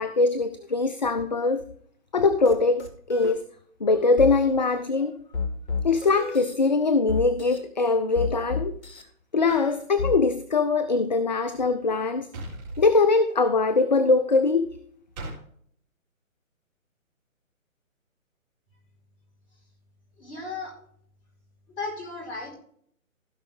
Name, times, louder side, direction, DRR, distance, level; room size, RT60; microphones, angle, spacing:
voice 1, 0.0-1.6 2.1-3.5 3.8-5.1 5.8-8.8 9.3-12.3 12.8-14.7, left 3 dB, 35° left, 12 dB, 0.4 m, -22 dB
sound 1, 2.4-2.5 2.8-3.3 4.2-4.3 5.3-6.5 7.1-7.6 8.1-9.0 9.5-10.1, left 5 dB, 55° left, 2.4 m, -30 dB
sound 2, 12.3-12.9 15.2-15.4, right 1 dB, 30° right, 4.2 m, -36 dB
voice 2, 20.2-20.8 21.7-22.5, left 3 dB, 20° left, -3 dB, 4.7 m, -35 dB
16.0 x 5.7 x 3.5 m, 0.62 s
figure-of-eight pair, 145°, 41 cm